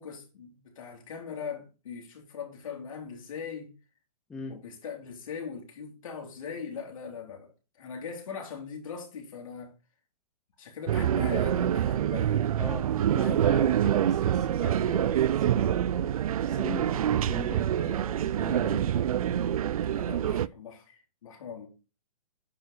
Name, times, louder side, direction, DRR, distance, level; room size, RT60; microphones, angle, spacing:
voice 1, 0.0-3.7 4.5-9.7 10.6-12.4 13.2-13.5 19.8-21.7, left 6 dB, 55° left, 3.3 m, -40 dB
sound 1, 10.9-20.5, right 10 dB, 60° right, 0.4 m, -26 dB
voice 2, 12.6-12.9 13.1-16.0 16.4-18.9, left 3 dB, 5° left, 0.4 m, -40 dB
9.8 x 4.7 x 4.2 m
hypercardioid pair, 165°, 21 cm